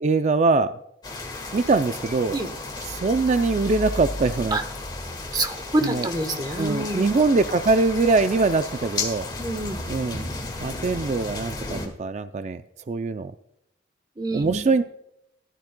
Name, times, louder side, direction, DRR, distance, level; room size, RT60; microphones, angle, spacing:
voice 1, 0.0-0.7 1.5-2.4 2.9-4.6 5.8-6.1 6.6-9.3 9.9-10.3 10.6-12.6 12.9-13.3 14.3-14.8, right 3 dB, 40° right, 11 dB, 0.4 m, -22 dB
sound 1, 1.0-11.9, left 2 dB, 25° left, 1.7 m, -33 dB
voice 2, 5.3-7.0 9.4-9.8 14.2-14.6, right 2 dB, 25° right, 8 dB, 1.0 m, -27 dB
16.0 x 12.0 x 2.2 m, 0.78 s
head